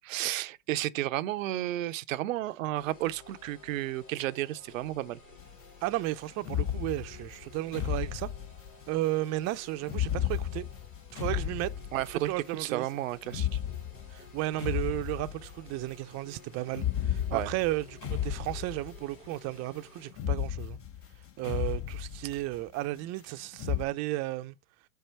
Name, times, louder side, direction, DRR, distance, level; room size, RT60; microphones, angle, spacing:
voice 1, 0.1-5.2 11.9-12.3 12.6-13.6 17.3-17.5, right 15 dB, 85° right, 0.6 m, -32 dB
sound 1, 2.7-20.1, left 3 dB, 80° left, 4.2 m, -54 dB
sound 2, 5.4-5.5 6.4-9.0 9.8-12.3 13.3-15.7 16.7-19.2 20.1-22.6 23.5-23.8, left 10 dB, 35° left, 0.9 m, -33 dB
voice 2, 5.8-8.3 8.9-10.6 11.1-11.7 12.2-12.8 14.1-20.8 21.4-24.6, right 17 dB, 45° right, 0.5 m, -34 dB
4.8 x 4.6 x 4.3 m
hypercardioid pair, 105°, 38 cm